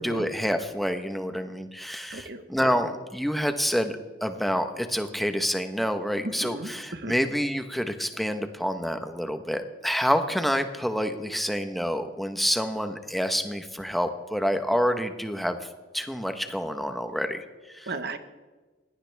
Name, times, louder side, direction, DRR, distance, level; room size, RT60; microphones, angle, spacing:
voice 1, 0.0-15.6 15.9-17.9, equal, ahead, 7 dB, 1.2 m, -28 dB
voice 2, 2.1-2.4 6.2-7.1 17.9-18.2, right 2 dB, 60° right, 9 dB, 1.3 m, -35 dB
20.5 x 17.5 x 3.5 m, 1.3 s
head